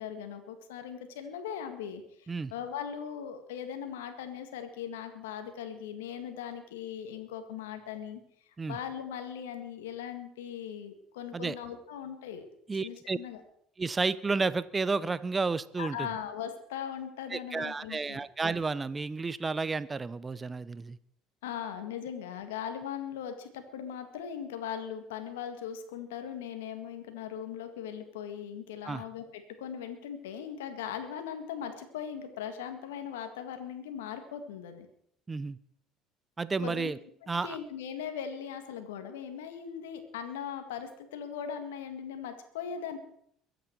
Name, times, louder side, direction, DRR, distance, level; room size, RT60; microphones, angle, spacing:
voice 1, 0.0-8.2 8.7-12.5 12.8-13.4 15.8-18.2 21.4-34.9 36.6-36.9 37.4-43.0, left 8 dB, 80° left, 7 dB, 1.9 m, -39 dB
voice 2, 12.7-13.2 13.8-16.1 17.3-21.0 28.8-29.0 35.3-35.6 36.4-37.0 37.3-37.6, right 4 dB, 25° right, 17 dB, 0.9 m, -31 dB
22.5 x 9.3 x 4.6 m, 0.66 s
hypercardioid pair, 65°, 0 cm